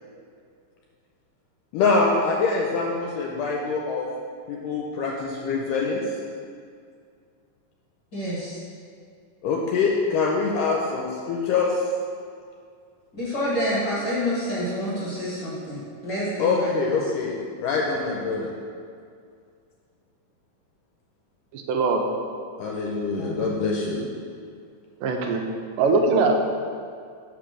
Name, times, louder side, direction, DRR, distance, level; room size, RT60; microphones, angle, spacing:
voice 1, 1.7-4.1 4.5-6.0 9.4-11.8 16.4-18.5 22.6-24.0, left 4 dB, 80° left, -1 dB, 2.1 m, -24 dB
voice 2, 8.1-8.6 13.1-17.1 23.2-23.6, equal, 40° left, -9 dB, 2.2 m, -28 dB
voice 3, 21.5-22.0 25.0-25.4 25.8-26.3, right 4 dB, 85° right, 3 dB, 2.2 m, -21 dB
5.2 x 5.0 x 6.1 m, 2.2 s
omnidirectional pair, 3.8 m